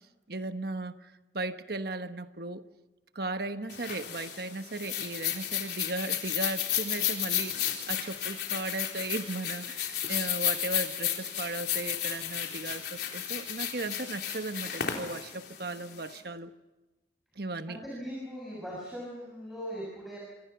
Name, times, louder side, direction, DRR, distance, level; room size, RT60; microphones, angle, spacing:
voice 1, 0.3-2.6 3.1-16.5 17.4-17.8, right 2 dB, 55° right, 9 dB, 1.2 m, -36 dB
sound 1, 3.7-16.1, left 10 dB, 60° left, 4.0 m, -33 dB
voice 2, 17.7-20.2, equal, ahead, -5 dB, 6.9 m, -39 dB
27.0 x 26.5 x 5.9 m, 1.1 s
head